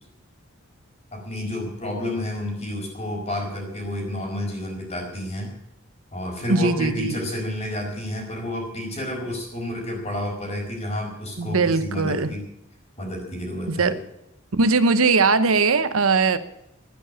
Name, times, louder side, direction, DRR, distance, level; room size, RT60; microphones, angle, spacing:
voice 1, 1.1-5.5 6.1-12.4 13.0-13.9, left 1 dB, 30° left, 2 dB, 4.8 m, -30 dB
voice 2, 6.5-7.1 11.4-12.3 13.7-13.9 14.5-16.4, right 4 dB, 85° right, 13 dB, 0.9 m, -20 dB
11.5 x 10.0 x 9.8 m, 0.81 s
head